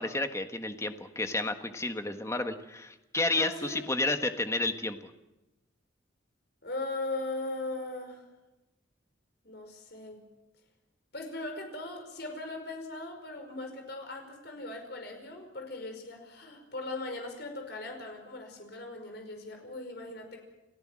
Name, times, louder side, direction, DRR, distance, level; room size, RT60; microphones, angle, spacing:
voice 1, 0.0-5.1, left 2 dB, 15° left, 7 dB, 1.4 m, -31 dB
voice 2, 3.4-3.8 6.6-8.2 9.4-10.2 11.1-20.4, left 2 dB, 55° left, 4 dB, 5.3 m, -39 dB
29.5 x 15.5 x 7.5 m, 1.0 s
head